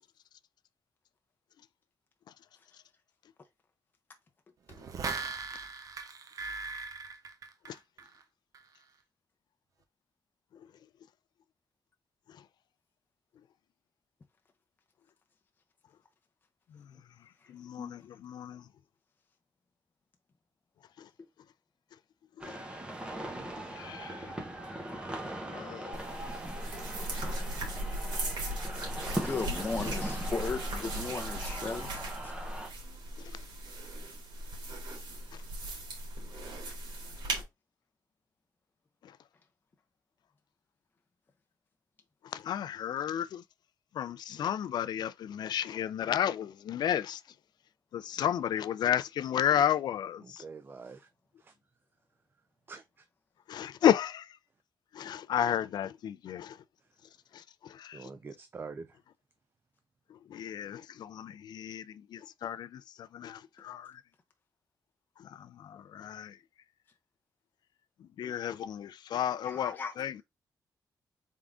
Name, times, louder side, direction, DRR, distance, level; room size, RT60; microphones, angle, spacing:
sound 1, 4.7-8.2 8.5-8.6, right 4 dB, 50° right, 0.7 m, -39 dB
voice 1, 16.7-18.7 21.0-21.1 22.4-22.6 23.6-24.4 25.5-26.1 27.2-27.4 30.2-30.3 33.2-33.4 35.3-35.4 39.0-39.2 42.2-43.4 43.9-47.2 47.9-50.4 53.5-54.4 54.9-56.6 57.3-58.1 60.1-64.0 65.2-66.4 68.0-70.2, left 10 dB, 65° left, 0.3 m, -33 dB
sound 2, 22.4-32.7, right 1 dB, 15° right, 1.0 m, -40 dB
sound 3, 25.9-37.4, right 1 dB, 80° right, 2.2 m, -38 dB
voice 2, 29.1-32.3 69.5-69.9, left 4 dB, 25° left, 0.6 m, -36 dB
voice 3, 50.2-51.1 51.4-51.5 52.7-53.0 57.9-59.0, right 4 dB, 30° right, 0.4 m, -45 dB
3.6 x 3.6 x 3.5 m
wide cardioid pair, 140°, 8 cm